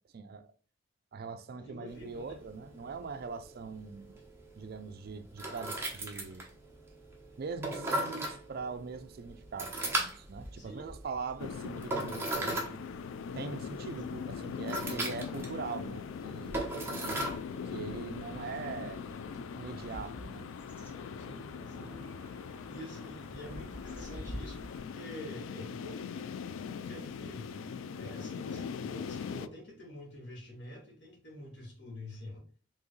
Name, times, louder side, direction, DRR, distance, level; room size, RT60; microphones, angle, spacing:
voice 1, 0.1-0.5 1.1-4.2 4.6-6.5 7.4-12.8 13.3-16.6 17.7-19.0 19.5-20.5, right 4 dB, 50° right, 0.4 m, -42 dB
voice 2, 1.6-2.4 9.7-10.0 10.5-10.9 13.9-14.0 21.2-22.0 22.7-26.4 26.6-32.4, left 1 dB, 65° left, 1.5 m, -48 dB
sound 1, 1.9-19.4, right 1 dB, 15° right, 0.9 m, -39 dB
sound 2, 11.4-29.5, left 6 dB, 85° left, 0.3 m, -41 dB
sound 3, 16.4-24.8, equal, 10° left, 1.5 m, -48 dB
4.6 x 2.9 x 3.1 m
head